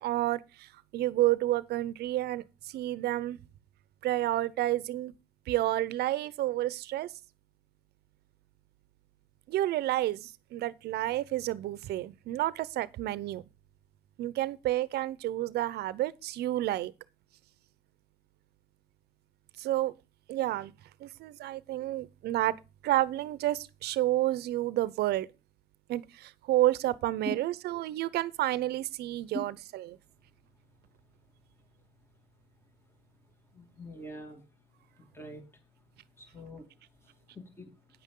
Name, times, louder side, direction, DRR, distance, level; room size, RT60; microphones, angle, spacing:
voice 1, 0.0-3.4 4.0-5.1 5.5-7.1 9.5-13.4 14.2-16.9 19.6-19.9 20.3-20.7 21.0-22.6 22.8-25.3 25.9-30.0, right 15 dB, 75° right, 0.7 m, -30 dB
voice 2, 33.5-34.4 35.1-35.4 36.2-36.7 37.3-37.7, equal, 15° left, 2.2 m, -41 dB
9.6 x 8.3 x 3.8 m
cardioid pair, 110°, 17 cm